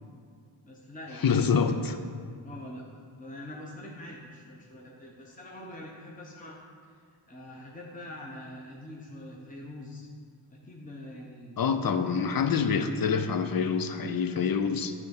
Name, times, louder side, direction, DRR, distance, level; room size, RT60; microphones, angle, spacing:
voice 1, 0.6-1.7 2.4-2.8 3.2-6.6 6.9-10.1 10.5-12.3, left 1 dB, 15° left, -3 dB, 1.0 m, -44 dB
voice 2, 1.2-2.0 11.6-14.9, left 6 dB, 45° left, 8 dB, 0.7 m, -26 dB
9.6 x 3.5 x 6.6 m, 2.1 s
cardioid pair, 60°, 48 cm